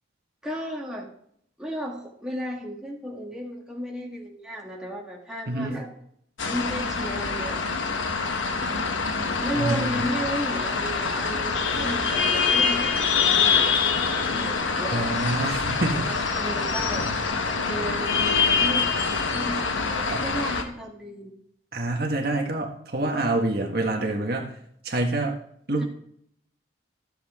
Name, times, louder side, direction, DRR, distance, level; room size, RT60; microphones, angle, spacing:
voice 1, 0.4-1.1 1.6-5.9 6.5-7.6 9.4-15.1 15.9-17.1 17.6-18.9 19.3-21.3 25.8-25.9, equal, 5° right, -3 dB, 1.7 m, -34 dB
voice 2, 5.5-5.8 9.5-10.1 14.9-16.1 19.5-19.6 20.1-20.2 21.7-24.5 24.8-25.4 25.7-25.8, right 2 dB, 50° right, 2 dB, 1.5 m, -27 dB
sound 1, 6.4-20.6, left 5 dB, 80° left, 1.2 m, -25 dB
13.5 x 7.8 x 3.6 m, 0.69 s
head